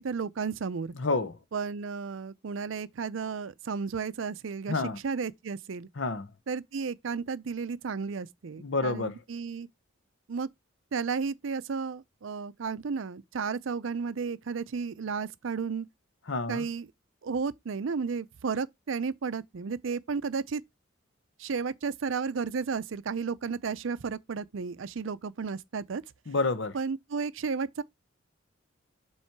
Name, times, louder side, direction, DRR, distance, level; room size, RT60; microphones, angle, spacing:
voice 1, 0.0-0.9 1.5-5.9 6.5-9.7 10.3-10.5 10.9-15.9 16.5-16.9 17.2-20.6 21.4-26.0 26.7-27.8, right 5 dB, 70° right, 0.5 m, -33 dB
voice 2, 1.0-1.3 4.7-5.0 6.0-6.3 8.6-9.2 16.3-16.6 26.3-26.7, left 3 dB, 65° left, 0.8 m, -29 dB
7.3 x 3.2 x 4.5 m
head